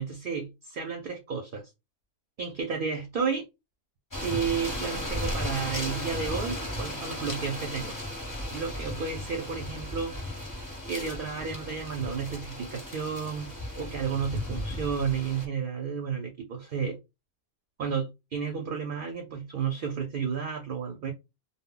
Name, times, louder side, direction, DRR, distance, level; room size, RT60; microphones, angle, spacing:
voice 1, 0.0-1.7 2.4-3.5 4.2-7.9 8.5-10.2 10.9-17.0 17.8-21.1, right 6 dB, 60° right, 0.6 m, -32 dB
sound 1, 4.1-15.5, left 1 dB, 20° left, 0.7 m, -35 dB
2.0 x 2.0 x 3.6 m
omnidirectional pair, 1.2 m